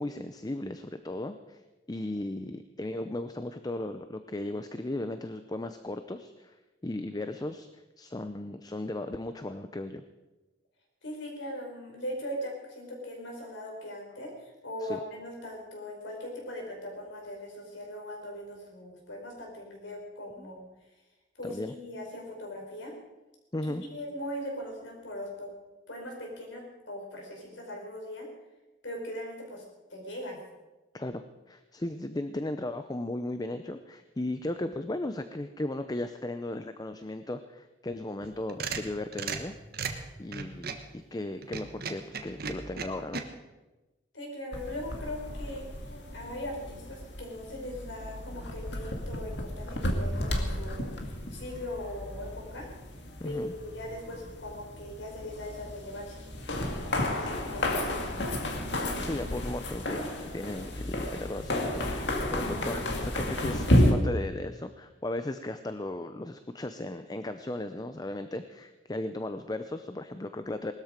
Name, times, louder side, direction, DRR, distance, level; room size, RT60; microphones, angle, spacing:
voice 1, 0.0-1.6 1.9-6.6 6.8-7.7 8.0-10.0 14.8-15.0 20.4-20.5 21.4-21.7 23.5-23.8 30.9-39.5 39.8-39.9 40.2-43.2 53.2-53.5 57.2-57.3 59.0-70.7, left 1 dB, 20° left, 9 dB, 0.6 m, -36 dB
voice 2, 11.0-20.6 21.4-22.9 23.6-25.5 25.9-28.3 28.8-29.6 29.9-30.4 44.1-45.7 46.1-52.7 53.2-56.2 56.8-58.4, left 1 dB, 90° left, 0 dB, 5.1 m, -40 dB
sound 1, 38.2-40.9 41.4-43.2, right 5 dB, 55° right, 1.3 m, -36 dB
sound 2, 44.5-63.9, left 1 dB, 65° left, 2.2 m, -32 dB
19.5 x 13.0 x 5.2 m, 1.1 s
head